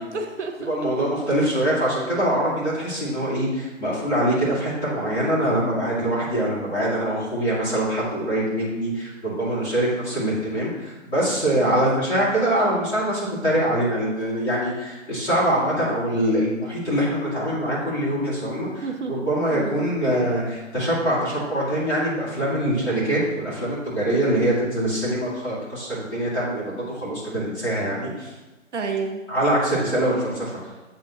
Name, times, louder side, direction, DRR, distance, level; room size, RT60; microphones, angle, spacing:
voice 1, 0.0-0.7 1.4-1.5 11.5-11.8 18.8-19.3 19.5-19.9 28.7-29.2, right 4 dB, 60° right, 4 dB, 0.9 m, -30 dB
voice 2, 0.7-28.3 29.3-30.6, right 1 dB, 5° left, -12 dB, 1.8 m, -24 dB
7.8 x 3.6 x 6.1 m, 1.2 s
hypercardioid pair, 160°, 39 cm